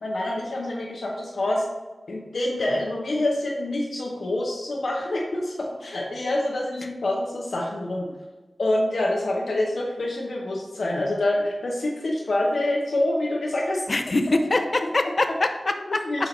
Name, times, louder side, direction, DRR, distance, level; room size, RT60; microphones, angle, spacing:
voice 1, 0.0-1.6 2.1-8.0 8.6-13.8 15.9-16.3, left 1 dB, 85° left, -2 dB, 0.8 m, -26 dB
voice 2, 13.9-16.3, left 2 dB, 50° left, 7 dB, 0.5 m, -24 dB
5.5 x 4.4 x 3.9 m, 1.2 s
wide cardioid pair, 95°, 0 cm